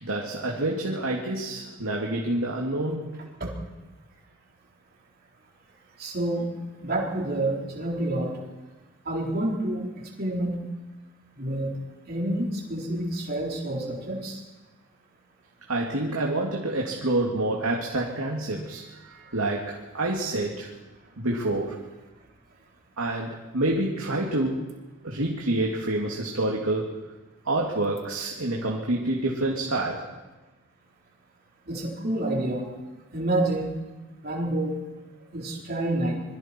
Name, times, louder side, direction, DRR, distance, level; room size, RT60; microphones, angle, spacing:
voice 1, 0.0-3.4 15.7-20.7 21.2-21.8 23.0-24.7 25.0-27.0 27.5-30.1, right 2 dB, 90° right, -1 dB, 2.5 m, -28 dB
voice 2, 6.0-6.5 6.8-8.4 9.0-9.9 10.2-10.6 11.4-11.7 12.1-14.4 31.7-32.7 33.1-33.7 34.2-34.8 35.3-36.2, right 1 dB, 45° right, -2 dB, 4.4 m, -28 dB
26.0 x 22.5 x 4.6 m, 1.1 s
head